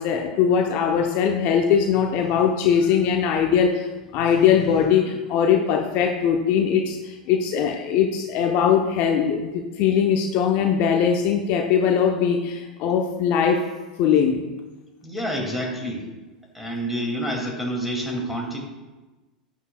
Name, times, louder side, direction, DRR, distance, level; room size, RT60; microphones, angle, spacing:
voice 1, 0.0-13.6 14.0-14.5, left 7 dB, 45° left, 2 dB, 0.8 m, -21 dB
voice 2, 15.0-16.0 16.5-18.6, equal, ahead, 0 dB, 2.4 m, -28 dB
11.0 x 8.4 x 2.3 m, 1.2 s
figure-of-eight pair, 95°, 5 cm